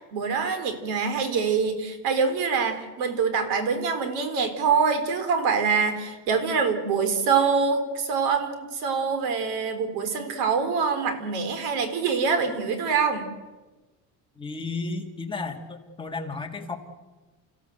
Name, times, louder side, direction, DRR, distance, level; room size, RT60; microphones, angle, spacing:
voice 1, 0.1-13.3, right 5 dB, 90° right, 9 dB, 4.1 m, -25 dB
voice 2, 14.4-16.8, left 3 dB, 15° left, 2 dB, 2.2 m, -33 dB
29.0 x 16.0 x 8.0 m, 1.2 s
cardioid pair, 155°, 37 cm